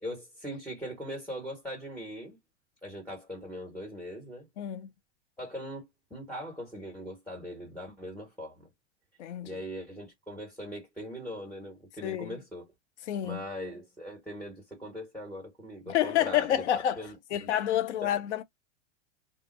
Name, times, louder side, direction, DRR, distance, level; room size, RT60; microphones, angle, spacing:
voice 1, 0.0-2.4 2.8-4.5 5.4-8.7 9.4-12.6 13.2-16.6 17.0-17.1 17.4-17.5 18.0-18.1, equal, 5° left, 1.4 m, -40 dB
voice 2, 4.6-4.9 9.2-9.6 12.0-12.4 13.0-13.4 15.9-17.0 17.3-18.4, left 11 dB, 75° left, 0.8 m, -29 dB
2.7 x 2.0 x 3.9 m
hypercardioid pair, 130°, 34 cm